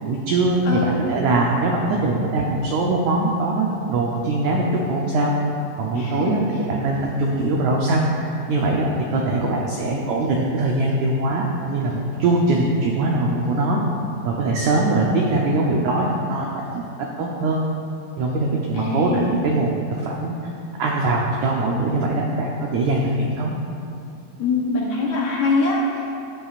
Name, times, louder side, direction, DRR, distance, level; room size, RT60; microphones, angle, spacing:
voice 1, 0.0-5.3 5.8-6.4 6.7-13.8 14.2-16.9 17.2-17.6 18.2-20.5 20.8-23.5, right 2 dB, 90° right, -1 dB, 1.6 m, -22 dB
voice 2, 0.6-1.0 5.9-6.4 18.7-19.3 24.4-26.2, left 3 dB, 75° left, -4 dB, 1.9 m, -23 dB
13.5 x 10.0 x 2.4 m, 2.6 s
omnidirectional pair, 4.3 m